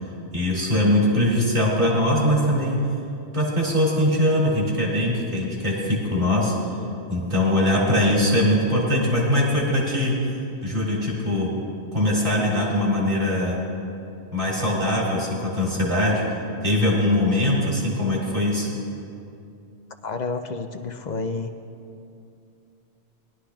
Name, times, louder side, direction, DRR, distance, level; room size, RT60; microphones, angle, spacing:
voice 1, 0.3-2.8 3.3-6.5 7.1-10.1 10.6-11.5 11.9-13.6 14.3-16.2 16.6-18.7, left 1 dB, 45° right, -6 dB, 2.4 m, -21 dB
voice 2, 20.0-21.5, left 4 dB, 55° left, 7 dB, 0.5 m, -30 dB
20.0 x 11.5 x 2.3 m, 2.5 s
omnidirectional pair, 1.1 m